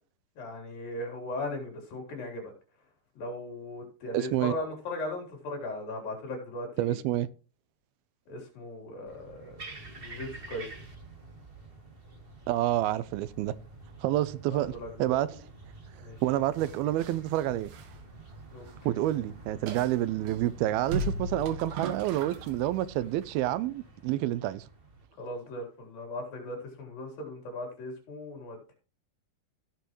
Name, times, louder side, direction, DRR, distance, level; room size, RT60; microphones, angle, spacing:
voice 1, 0.4-2.5 3.2-7.0 8.3-10.7 14.5-15.2 16.0-16.2 18.5-19.0 25.2-28.6, left 1 dB, 70° left, 5.3 m, -38 dB
voice 2, 4.1-4.5 6.8-7.3 12.5-13.5 14.0-15.3 16.2-17.7 18.8-24.6, right 14 dB, 85° right, 2.6 m, -28 dB
sound 1, 9.1-25.1, right 3 dB, 40° right, 0.8 m, -48 dB
sound 2, 16.5-18.8 19.1-19.2 19.7-20.4 20.8-22.7 23.0-23.2, right 1 dB, 65° right, 2.6 m, -37 dB
16.5 x 6.9 x 3.1 m
omnidirectional pair, 4.3 m